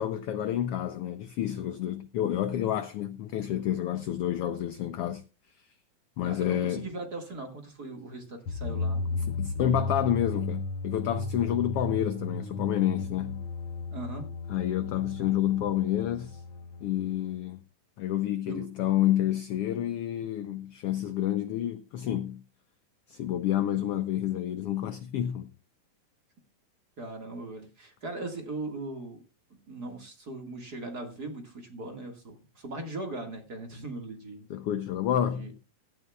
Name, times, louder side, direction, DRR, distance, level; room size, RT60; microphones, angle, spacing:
voice 1, 0.0-5.2 6.2-6.9 9.3-13.4 14.5-16.4 16.8-17.6 18.0-22.4 23.1-25.5 34.5-35.5, left 11 dB, 80° left, 1.3 m, -29 dB
voice 2, 6.2-9.3 13.9-14.3 18.5-18.7 27.0-29.2 29.7-34.5 35.3-35.5, right 2 dB, 35° right, 2.0 m, -39 dB
sound 1, 8.5-17.3, left 3 dB, 60° left, 1.9 m, -35 dB
16.5 x 12.5 x 2.3 m
omnidirectional pair, 3.5 m